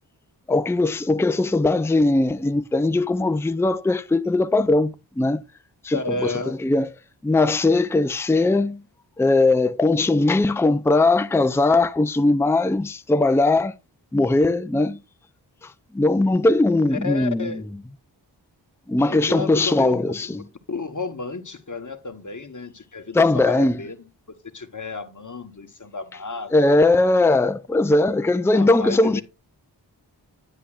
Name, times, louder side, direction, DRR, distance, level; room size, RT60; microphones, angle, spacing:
voice 1, 0.5-5.4 5.8-6.9 7.2-8.8 9.2-13.7 14.1-15.0 15.6-17.6 18.9-20.4 23.1-23.8 26.5-29.2, left 2 dB, 5° left, 0.5 m, -20 dB
voice 2, 5.9-6.6 16.9-17.7 19.1-23.9 24.4-26.8 28.4-29.2, left 3 dB, 45° left, 1.2 m, -32 dB
9.8 x 8.1 x 2.5 m
cardioid pair, 45°, 44 cm